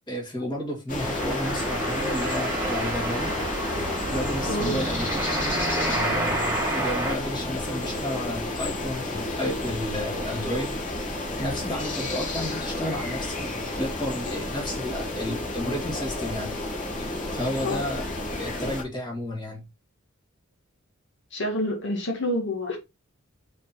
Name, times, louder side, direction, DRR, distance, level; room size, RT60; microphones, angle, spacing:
voice 1, 0.1-3.3 4.1-10.7 11.4-16.6 17.3-18.0 18.4-19.6, left 1 dB, 20° left, 2.4 m, -32 dB
sound 1, 0.9-18.8, left 2 dB, 40° left, 2.4 m, -31 dB
sound 2, 1.0-7.2, right 1 dB, 15° right, 2.1 m, -30 dB
sound 3, 2.2-8.0, right 4 dB, 45° right, 0.6 m, -39 dB
voice 2, 4.5-4.8 17.6-17.8 21.3-22.8, left 1 dB, 60° left, 2.2 m, -28 dB
5.8 x 4.5 x 4.1 m
head